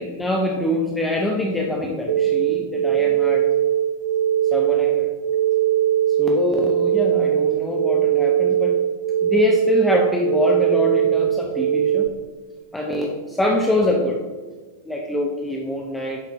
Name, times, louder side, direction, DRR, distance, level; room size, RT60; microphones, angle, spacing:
voice 1, 0.0-3.4 4.5-5.1 6.2-8.8 9.2-12.1 12.7-14.2 14.9-16.2, left 1 dB, 5° left, -1 dB, 0.7 m, -24 dB
sound 1, 2.1-12.1, right 11 dB, 80° right, 0.5 m, -20 dB
10.5 x 4.3 x 3.0 m, 1.4 s
figure-of-eight pair, 90°, 0 cm